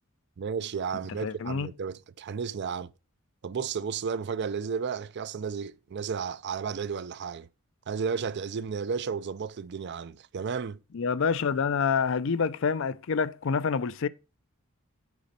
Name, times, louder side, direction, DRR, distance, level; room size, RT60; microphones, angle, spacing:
voice 1, 0.4-2.9 3.4-7.5 7.9-10.8, right 6 dB, 55° right, 0.4 m, -33 dB
voice 2, 1.2-1.7 10.9-14.1, left 5 dB, 65° left, 0.5 m, -27 dB
8.2 x 5.1 x 4.1 m
head